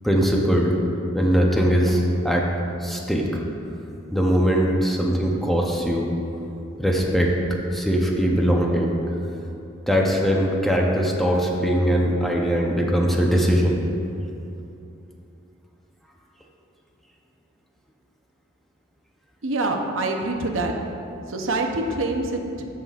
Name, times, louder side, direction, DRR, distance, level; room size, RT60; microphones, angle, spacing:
voice 1, 0.0-0.7 1.1-2.4 2.8-3.3 4.1-6.1 6.8-7.3 7.7-8.9 9.9-13.8, equal, ahead, -1 dB, 0.7 m, -21 dB
voice 2, 19.4-20.7 21.3-22.7, right 2 dB, 75° right, 3 dB, 0.7 m, -25 dB
15.0 x 5.7 x 2.5 m, 2.8 s
head